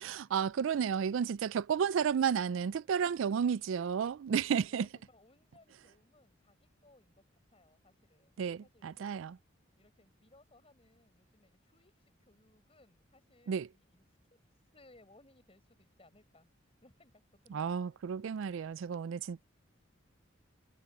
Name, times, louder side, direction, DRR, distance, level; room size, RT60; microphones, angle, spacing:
voice 1, 0.0-4.9 8.4-8.6 8.8-9.4 13.5-13.7 17.5-19.5, right 7 dB, 75° right, 0.4 m, -32 dB
voice 2, 2.8-3.2 4.3-9.1 9.8-14.1 14.3-14.4 14.7-16.5 16.8-18.0, left 2 dB, 30° left, 5.4 m, -64 dB
head